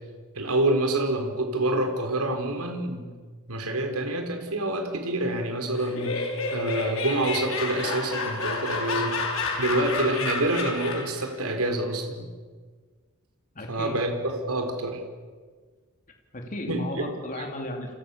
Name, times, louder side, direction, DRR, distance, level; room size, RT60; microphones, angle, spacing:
voice 1, 0.3-3.1 3.5-9.1 9.6-12.3 13.7-15.0 16.7-17.1, right 1 dB, 90° right, 5 dB, 4.3 m, -27 dB
Laughter, 5.8-11.2, left 3 dB, 65° left, 5.7 m, -30 dB
voice 2, 13.5-14.0 16.3-17.9, left 1 dB, 35° left, 2 dB, 2.9 m, -34 dB
30.0 x 27.5 x 7.1 m, 1.5 s
head